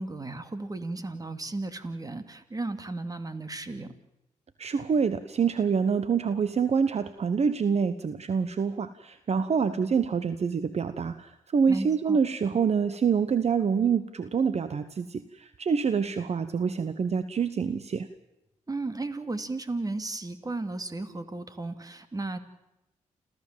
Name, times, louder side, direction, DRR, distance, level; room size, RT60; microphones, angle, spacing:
voice 1, 0.0-3.9 11.7-12.2 18.7-22.4, right 2 dB, 30° right, 10 dB, 2.6 m, -34 dB
voice 2, 4.6-18.1, right 6 dB, 55° right, 12 dB, 1.1 m, -26 dB
29.0 x 14.5 x 7.6 m, 0.92 s
cardioid pair, 65°, 13 cm